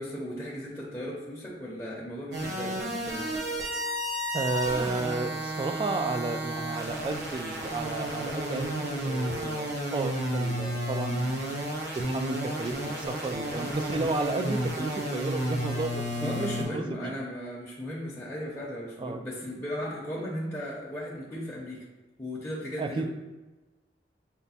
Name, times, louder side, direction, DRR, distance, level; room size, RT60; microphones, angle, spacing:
voice 1, 0.0-3.3 14.1-14.3 16.2-21.8 22.2-23.1, equal, 15° left, -6 dB, 0.7 m, -36 dB
sound 1, 2.3-16.6, right 1 dB, 65° right, 1.1 m, -32 dB
voice 2, 4.3-11.6 11.9-17.3 19.0-19.3 22.8-23.1, right 3 dB, 30° right, 7 dB, 0.3 m, -33 dB
5.7 x 2.2 x 4.1 m, 1.2 s
head